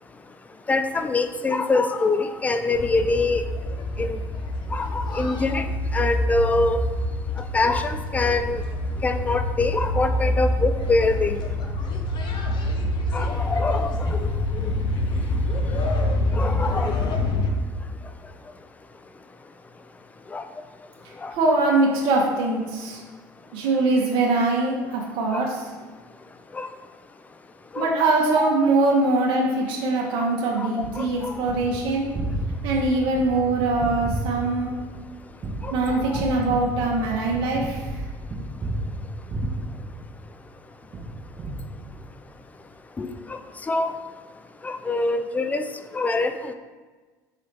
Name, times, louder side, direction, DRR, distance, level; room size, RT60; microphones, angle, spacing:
voice 1, 0.7-3.4 4.0-4.2 4.7-5.6 5.9-6.8 7.5-8.6 9.0-11.4 13.1-14.3 14.6-14.7 16.3-17.0 20.3-20.4 21.2-21.3 26.5-26.7 27.7-27.9 28.3-28.5 30.5-30.7 30.9-31.4 35.6-36.2 43.0-43.1 43.7-43.9 44.6-45.6 45.9-46.5, left 3 dB, 15° left, 9 dB, 0.3 m, -24 dB
sound 1, 2.7-17.5, left 1 dB, 50° left, 0.6 m, -26 dB
voice 2, 21.3-23.0 23.5-25.7 27.8-32.1 32.6-34.7 35.7-38.0, right 2 dB, 70° right, -2 dB, 0.8 m, -22 dB
Gunshot gunfire, 30.8-40.5 40.9-42.3, right 1 dB, 35° right, 0.7 m, -32 dB
4.9 x 2.9 x 3.3 m, 1.4 s
supercardioid pair, 75°, 10 cm